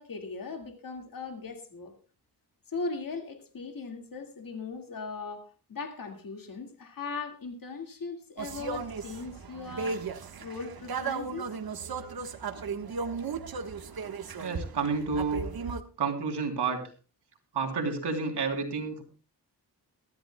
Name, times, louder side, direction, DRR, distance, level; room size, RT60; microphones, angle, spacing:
voice 1, 0.0-1.9 2.7-11.5, left 4 dB, 55° left, 5 dB, 2.0 m, -39 dB
sound 1, 8.4-15.8, right 5 dB, 60° right, 1.3 m, -36 dB
voice 2, 14.4-15.4 16.0-16.8 17.5-19.0, right 4 dB, 80° right, 3 dB, 3.3 m, -30 dB
22.5 x 13.5 x 2.2 m, 0.35 s
wide cardioid pair, 105°, 40 cm